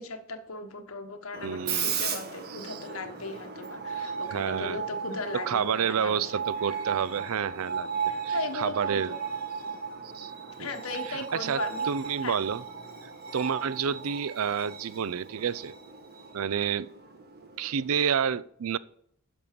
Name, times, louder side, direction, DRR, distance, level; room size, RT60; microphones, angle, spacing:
voice 1, 0.0-6.4 8.1-9.2 10.6-11.9 12.2-12.4, left 3 dB, 75° left, 1.3 m, -37 dB
Screech, 1.3-17.9, right 6 dB, 45° right, 1.5 m, -36 dB
voice 2, 1.4-2.0 2.5-2.8 4.3-4.8 5.3-7.9 8.2-9.2 10.1-10.3 10.6-10.7 11.1-12.6 13.3-15.7 16.3-16.9 17.6-18.8, right 7 dB, 80° right, 0.5 m, -29 dB
11.0 x 5.5 x 6.8 m
head